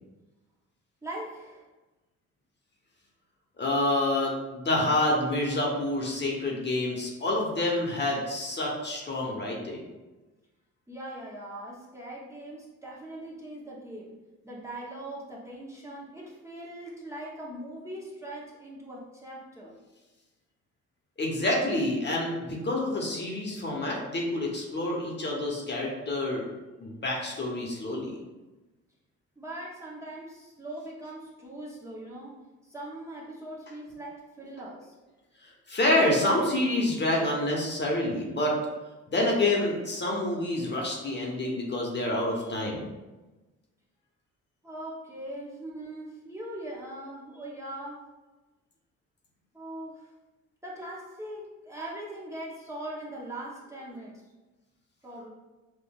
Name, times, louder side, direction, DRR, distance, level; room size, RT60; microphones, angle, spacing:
voice 1, 1.0-1.7 10.9-14.1 14.4-19.7 29.4-32.4 32.6-34.9 44.6-48.0 49.5-50.1 50.6-54.2 55.0-55.3, right 1 dB, 10° right, -6 dB, 0.8 m, -41 dB
voice 2, 3.6-9.8 21.2-26.4 26.8-28.1 35.7-38.6 39.1-42.9, left 1 dB, 35° left, -1 dB, 1.0 m, -27 dB
5.4 x 2.5 x 2.3 m, 1.1 s
cardioid pair, 90°, 30 cm